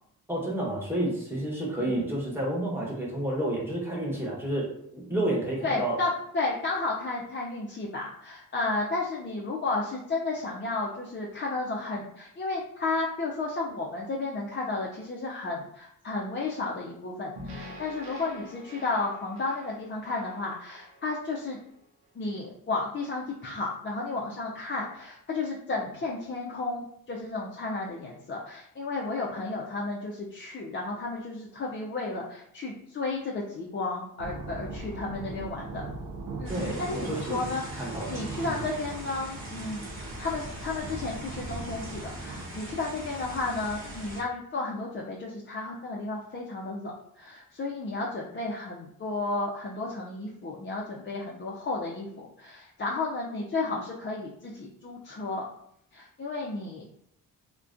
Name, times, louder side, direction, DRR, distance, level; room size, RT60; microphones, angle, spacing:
voice 1, 0.3-6.0 36.5-37.4 37.8-38.1 38.4-38.6, right 1 dB, 5° right, -5 dB, 1.0 m, -30 dB
voice 2, 5.6-21.6 22.2-35.8 36.4-39.9 40.2-55.4 55.9-56.8, left 3 dB, 30° left, -3 dB, 0.4 m, -33 dB
sound 1, 17.4-21.7, equal, 90° right, 0.6 m, -46 dB
sound 2, 34.2-42.4, right 3 dB, 50° right, 0.5 m, -40 dB
sound 3, 36.4-44.2, right 1 dB, 30° right, 1.0 m, -41 dB
2.3 x 2.2 x 2.5 m, 0.73 s
supercardioid pair, 55°, 39 cm